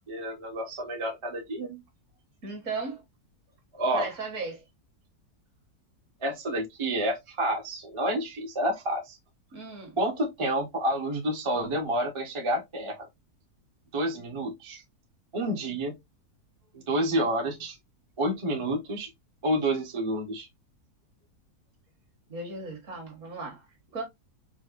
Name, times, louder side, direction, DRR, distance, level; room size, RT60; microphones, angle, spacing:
voice 1, 0.1-1.8 3.7-4.1 6.2-9.2 10.0-13.1 13.9-14.8 15.3-16.0 16.7-17.8 18.2-19.1 19.4-20.5, right 1 dB, 30° right, 0.6 m, -29 dB
voice 2, 2.4-3.0 3.9-4.6 9.5-10.0 22.3-24.0, right 3 dB, 55° right, 1.5 m, -37 dB
4.7 x 2.2 x 2.4 m
omnidirectional pair, 1.7 m